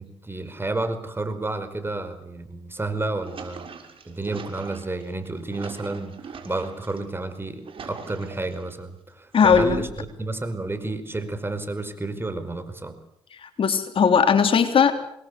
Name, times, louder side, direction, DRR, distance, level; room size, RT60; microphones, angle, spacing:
voice 1, 0.0-3.7 4.1-13.0, right 2 dB, 20° right, 11 dB, 5.0 m, -31 dB
sound 1, 2.9-7.0 7.4-8.7 9.3-10.0, right 6 dB, 55° right, 6.4 m, -41 dB
voice 2, 9.3-9.8 13.4-14.9, left 6 dB, 55° left, 7 dB, 3.6 m, -18 dB
27.0 x 21.0 x 8.3 m, 0.74 s
supercardioid pair, 60°, 11 cm